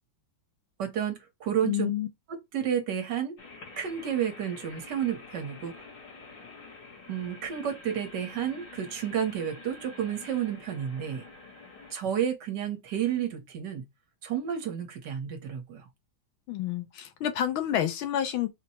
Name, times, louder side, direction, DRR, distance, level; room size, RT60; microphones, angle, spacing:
voice 1, 0.8-1.9 2.3-3.4 3.8-5.7 7.1-11.2 11.9-13.9 14.2-15.8, right 9 dB, 60° right, 1.5 m, -31 dB
voice 2, 1.6-2.1 16.5-18.5, left 11 dB, 85° left, 1.5 m, -29 dB
sound 1, 3.4-11.9, left 3 dB, 65° left, 2.1 m, -47 dB
4.4 x 2.2 x 4.2 m
omnidirectional pair, 2.2 m